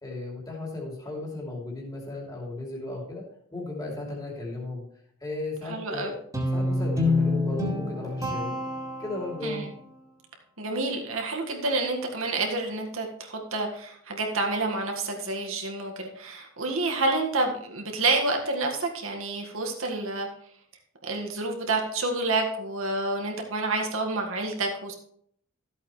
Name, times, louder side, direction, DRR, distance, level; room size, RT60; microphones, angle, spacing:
voice 1, 0.0-3.2 3.5-4.8 5.2-6.2 6.5-8.5 9.0-9.7, left 2 dB, 20° left, -2 dB, 2.9 m, -35 dB
voice 2, 5.7-6.1 9.4-9.7 10.6-20.3 21.0-24.9, right 2 dB, 75° right, 1 dB, 1.8 m, -28 dB
Guitar, 6.3-9.6, left 2 dB, 15° right, 2.3 m, -27 dB
13.5 x 8.4 x 3.2 m, 0.65 s
head